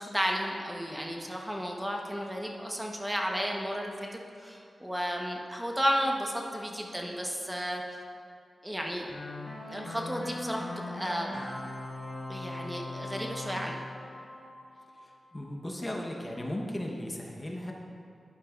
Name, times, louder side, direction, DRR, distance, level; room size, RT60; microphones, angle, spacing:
voice 1, 0.0-7.8 8.6-9.1 9.7-11.4 12.3-13.7, equal, 10° right, 0 dB, 1.1 m, -33 dB
sound 1, 9.1-15.2, left 2 dB, 60° left, 1.5 m, -40 dB
voice 2, 14.9-17.7, left 1 dB, 25° left, 0 dB, 1.0 m, -36 dB
11.0 x 9.7 x 2.5 m, 2.4 s
cardioid pair, 50°, 0 cm